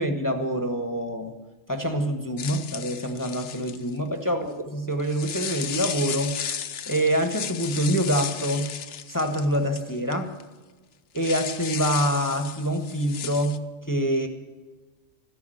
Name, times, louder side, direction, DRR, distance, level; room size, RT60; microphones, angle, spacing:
voice 1, 0.0-1.3 1.7-6.4 6.9-8.7 9.1-10.4 11.1-13.6 13.9-14.3, equal, 15° left, 5 dB, 1.1 m, -26 dB
sound 1, 2.4-4.0 5.0-10.1 10.4-10.5 11.2-13.6, left 8 dB, 65° left, 1.0 m, -34 dB
13.5 x 11.0 x 7.7 m, 1.3 s
omnidirectional pair, 1.3 m